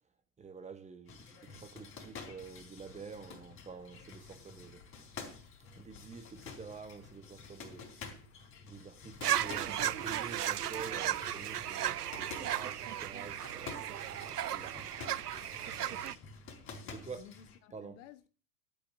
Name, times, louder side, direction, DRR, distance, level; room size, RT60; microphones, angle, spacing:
voice 1, 0.4-4.8 5.7-7.9 8.7-14.8 16.9-17.2 17.7-18.0, right 5 dB, 15° right, 1.4 m, -48 dB
sound 1, 1.1-17.6, left 4 dB, 30° left, 3.9 m, -50 dB
sound 2, 1.7-14.5, left 6 dB, 85° left, 2.2 m, -64 dB
sound 3, 9.2-16.2, right 11 dB, 85° right, 0.6 m, -35 dB
voice 2, 15.8-16.3 16.8-18.3, left 9 dB, 55° left, 1.7 m, -56 dB
12.0 x 8.8 x 6.5 m
hypercardioid pair, 100°, 46 cm